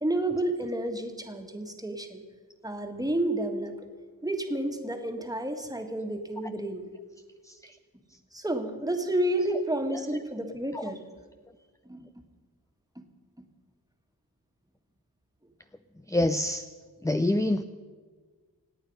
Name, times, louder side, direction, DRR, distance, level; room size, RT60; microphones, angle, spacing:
voice 1, 0.0-2.2 2.6-3.8 4.2-6.8 8.3-11.0 11.9-12.1 13.0-13.1, right 1 dB, 10° right, 5 dB, 1.7 m, -30 dB
voice 2, 16.1-16.7 17.0-17.6, left 1 dB, 10° left, 10 dB, 0.4 m, -26 dB
26.0 x 9.4 x 5.4 m, 1.5 s
wide cardioid pair, 85°, 38 cm